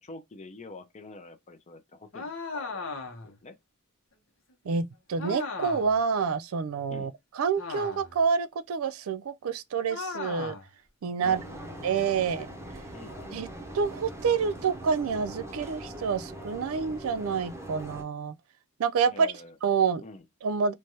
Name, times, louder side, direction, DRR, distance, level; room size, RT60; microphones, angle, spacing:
voice 1, 0.0-2.9 3.2-3.6 6.9-7.1 11.2-12.4 12.9-13.4 19.1-19.5 20.0-20.2, left 2 dB, 35° left, 0.5 m, -47 dB
sound 1, 2.1-3.4 5.2-6.0 7.6-8.2 9.9-10.7, left 4 dB, 65° left, 0.9 m, -37 dB
voice 2, 4.7-10.5 11.0-11.4 11.8-12.5 13.3-13.5 13.7-18.3 18.8-19.3 19.6-20.0 20.4-20.7, right 6 dB, 80° right, 0.4 m, -28 dB
sound 2, 11.2-18.0, right 1 dB, 15° right, 0.7 m, -42 dB
3.2 x 2.2 x 2.6 m
head